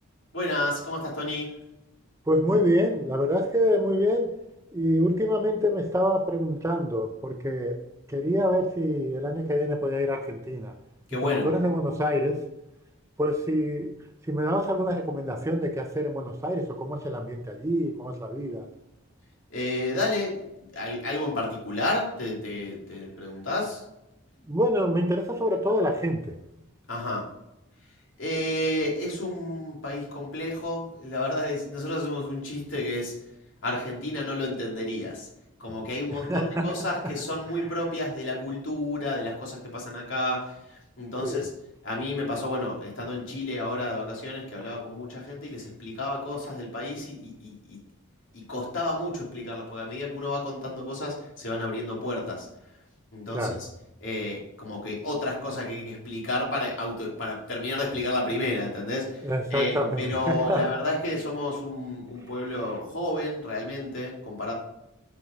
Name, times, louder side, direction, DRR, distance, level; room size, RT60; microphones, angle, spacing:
voice 1, 0.3-1.5 11.1-12.0 19.5-20.4 20.7-23.8 26.9-27.3 28.2-33.1 33.6-35.3 35.6-41.5 41.8-47.8 48.3-52.5 53.1-53.7 54.0-64.5, left 1 dB, 65° left, 2.6 m, -31 dB
voice 2, 2.3-4.4 4.7-7.8 8.1-10.7 11.1-12.5 13.2-14.0 14.2-18.7 24.4-26.3 36.1-36.7 41.2-41.4 53.3-53.6 59.2-60.6 62.6-62.7, equal, 15° right, 0.6 m, -26 dB
7.9 x 4.9 x 5.0 m
head